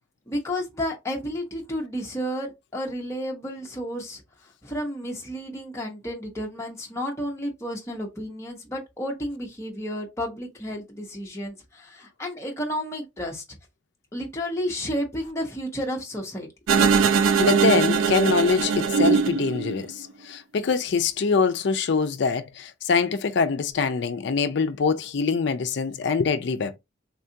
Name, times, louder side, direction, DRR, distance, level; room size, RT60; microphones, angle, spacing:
voice 1, 0.3-4.2 4.6-13.4 14.1-16.5, equal, 15° left, 0.7 m, -31 dB
sound 1, 16.7-20.0, right 6 dB, 80° right, 0.4 m, -21 dB
voice 2, 17.1-26.8, left 5 dB, 60° left, 0.4 m, -24 dB
3.6 x 2.3 x 2.6 m
head